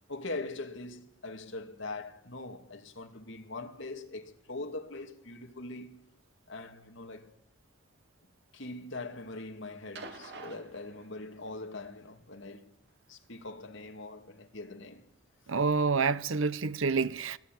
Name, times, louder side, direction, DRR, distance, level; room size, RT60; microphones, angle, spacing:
voice 1, 0.1-6.0 6.5-7.4 8.5-12.7 13.1-15.0, left 2 dB, 65° left, 2.4 m, -42 dB
sound 1, 10.0-11.6 12.9-13.0, right 3 dB, 55° right, 2.9 m, -47 dB
voice 2, 15.5-17.4, right 4 dB, 75° right, 0.9 m, -28 dB
24.0 x 18.0 x 9.3 m
head